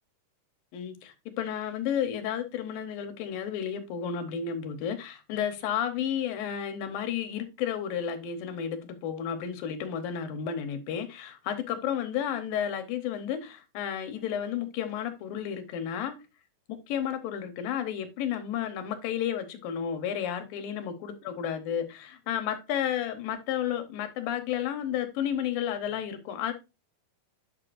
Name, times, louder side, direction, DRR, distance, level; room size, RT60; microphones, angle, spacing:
voice 1, 0.7-16.1 16.9-26.5, left 9 dB, 80° left, 2.8 m, -32 dB
9.6 x 6.6 x 2.5 m
omnidirectional pair, 4.1 m